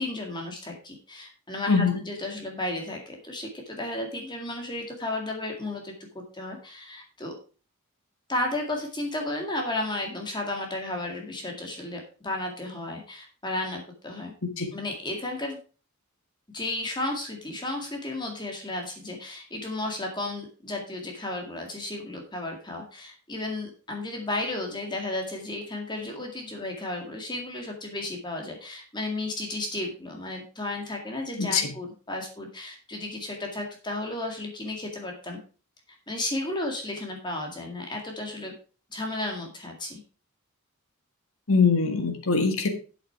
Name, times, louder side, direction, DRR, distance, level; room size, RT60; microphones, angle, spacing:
voice 1, 0.0-7.3 8.3-14.3 14.7-15.6 16.5-35.4 36.1-38.5 38.9-40.0, left 2 dB, 20° left, 1 dB, 2.0 m, -33 dB
voice 2, 41.5-42.7, left 4 dB, 65° left, 5 dB, 1.6 m, -22 dB
8.2 x 7.9 x 4.6 m, 0.36 s
head